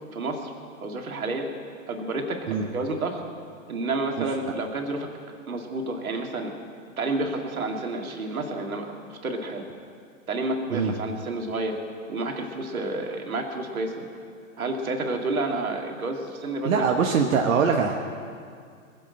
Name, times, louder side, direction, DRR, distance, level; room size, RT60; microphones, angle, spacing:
voice 1, 0.1-0.5 0.8-1.5 1.9-3.2 3.7-5.1 5.5-6.5 7.0-9.7 10.3-11.8 12.1-14.1 14.6-16.9, right 2 dB, 85° right, 2 dB, 2.2 m, -30 dB
voice 2, 16.6-17.9, right 6 dB, 70° right, 2 dB, 1.3 m, -22 dB
21.0 x 7.9 x 7.8 m, 2.2 s
hypercardioid pair, 120°, 41 cm